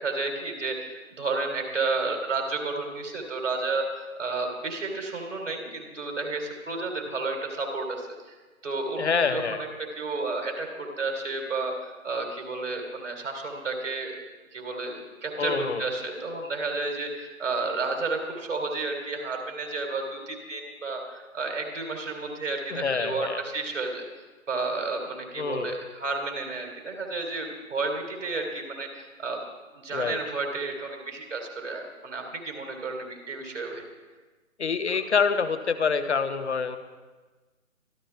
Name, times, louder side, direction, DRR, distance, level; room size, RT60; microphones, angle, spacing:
voice 1, 0.0-8.4 8.6-9.7 10.0-14.2 14.5-24.1 24.5-29.4 29.7-33.9, right 3 dB, 60° right, 3 dB, 3.5 m, -31 dB
voice 2, 9.0-9.6 15.4-15.9 22.7-23.4 25.4-25.7 29.9-30.2 34.6-36.8, left 5 dB, 55° left, 10 dB, 1.2 m, -26 dB
25.0 x 13.5 x 3.4 m, 1.3 s
figure-of-eight pair, 155°, 41 cm